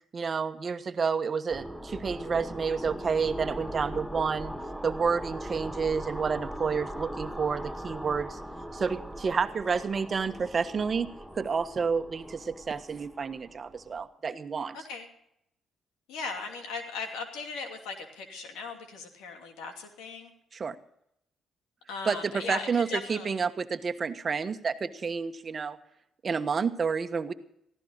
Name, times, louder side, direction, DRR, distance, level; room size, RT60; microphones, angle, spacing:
voice 1, 0.1-4.5 4.8-8.4 8.7-11.1 11.4-14.8 20.5-20.7 22.1-25.8 26.2-27.3, right 5 dB, 45° right, 9 dB, 1.2 m, -30 dB
sound 1, 1.5-14.0, equal, 5° left, 1.6 m, -40 dB
voice 2, 14.7-15.1 16.1-20.3 21.9-23.4, left 4 dB, 85° left, 4 dB, 2.7 m, -38 dB
16.5 x 15.0 x 4.0 m, 0.76 s
supercardioid pair, 60°, 0 cm